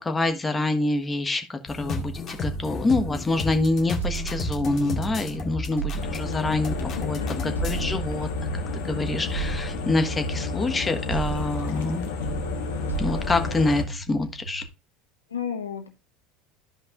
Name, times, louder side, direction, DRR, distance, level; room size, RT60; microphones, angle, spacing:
voice 1, 0.0-8.3 8.8-12.1 13.0-14.6, left 2 dB, 20° left, 6 dB, 1.4 m, -26 dB
sound 1, 1.7-7.8, left 2 dB, 40° left, 2.0 m, -33 dB
sound 2, 4.0-7.1 7.6-12.0 12.2-14.7, right 6 dB, 90° right, 0.8 m, -35 dB
sound 3, 6.0-13.8, left 3 dB, 70° left, 1.4 m, -31 dB
voice 2, 6.9-7.9 15.3-15.9, left 8 dB, 90° left, 5 dB, 1.1 m, -34 dB
13.0 x 5.2 x 2.5 m, 0.27 s
hypercardioid pair, 75°, 0 cm